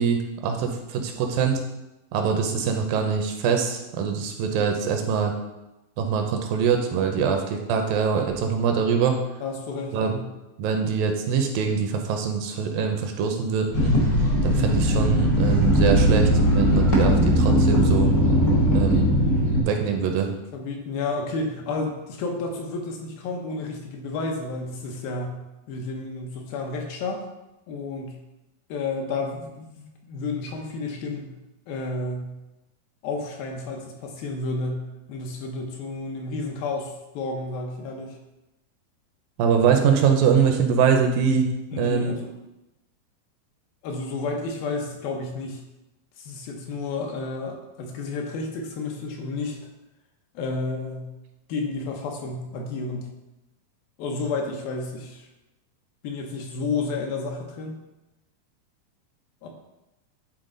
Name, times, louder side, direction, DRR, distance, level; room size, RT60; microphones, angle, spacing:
voice 1, 0.0-1.6 2.1-5.3 6.0-7.4 7.7-9.2 9.9-10.1 10.6-13.9 14.4-18.1 18.7-19.1 19.6-20.3 39.4-41.5 41.8-42.2, right 6 dB, 80° right, 4 dB, 2.2 m, -23 dB
voice 2, 9.4-10.3 19.9-20.0 20.5-25.4 25.7-27.2 27.7-28.2 28.7-31.3 31.7-32.3 33.0-38.2 41.7-42.3 43.8-45.6 46.2-49.6 50.3-51.1 51.5-53.1 54.0-55.3 56.0-57.7 59.4-59.5, left 3 dB, 75° left, 1 dB, 2.7 m, -31 dB
sound 1, 13.7-19.6, equal, 55° left, 1.0 m, -19 dB
10.5 x 4.3 x 3.9 m, 0.98 s
omnidirectional pair, 4.4 m